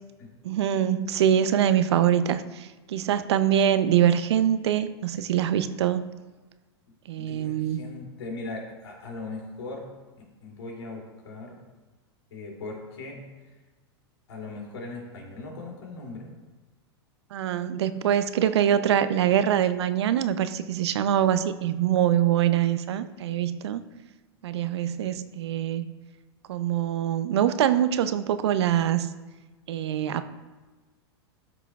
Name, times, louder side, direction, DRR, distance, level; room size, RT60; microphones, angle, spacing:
voice 1, 0.4-6.1 7.1-7.8 17.3-23.8 24.4-25.8 26.5-29.1 29.7-30.3, right 10 dB, 75° right, 12 dB, 0.5 m, -24 dB
voice 2, 7.2-9.8 10.2-11.6 12.3-13.2 14.3-16.3, left 3 dB, 80° left, -1 dB, 2.7 m, -39 dB
13.0 x 5.8 x 2.3 m, 1.2 s
hypercardioid pair, 110°, 14 cm